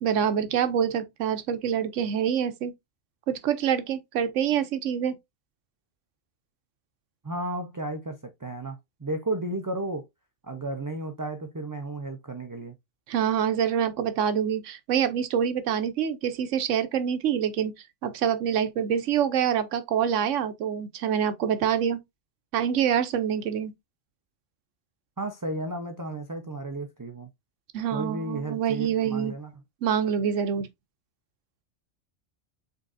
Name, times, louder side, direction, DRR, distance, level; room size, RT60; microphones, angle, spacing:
voice 1, 0.0-2.7 3.3-5.2 13.1-17.7 18.0-22.0 22.5-23.7 27.7-29.3 29.8-30.7, right 8 dB, 85° right, 1.1 m, -26 dB
voice 2, 7.2-10.0 10.4-12.7 25.2-27.3 27.9-29.5, right 2 dB, 20° right, 0.5 m, -33 dB
5.3 x 3.9 x 2.5 m
omnidirectional pair, 1.2 m